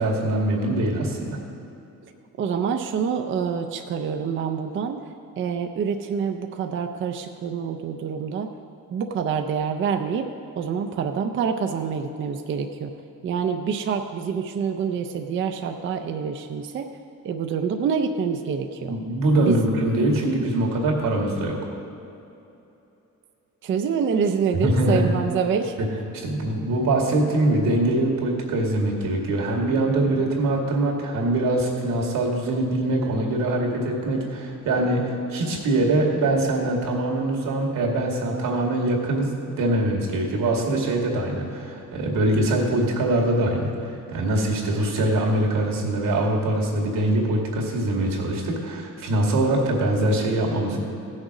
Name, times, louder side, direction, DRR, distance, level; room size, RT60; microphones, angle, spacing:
voice 1, 0.0-1.4 18.9-21.6 24.6-25.0 26.1-39.3 39.6-50.8, right 1 dB, 90° right, -1 dB, 2.2 m, -23 dB
voice 2, 2.4-8.5 8.9-12.9 13.2-16.9 17.2-19.0 19.4-19.6 23.6-25.8, right 6 dB, 40° right, 5 dB, 0.4 m, -26 dB
16.0 x 6.5 x 4.8 m, 2.9 s
cardioid pair, 180°, 32 cm